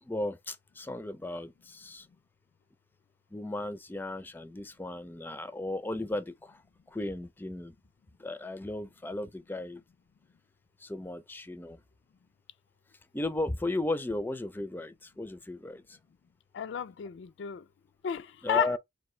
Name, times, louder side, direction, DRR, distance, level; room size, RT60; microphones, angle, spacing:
voice 1, 0.0-2.1 3.3-6.6 6.9-7.8 8.2-9.8 10.8-11.8 13.1-16.0 18.4-18.8, left 2 dB, 10° left, 0.4 m, -35 dB
voice 2, 16.5-17.6 18.0-18.8, left 8 dB, 85° left, 0.3 m, -32 dB
4.7 x 2.5 x 3.1 m
head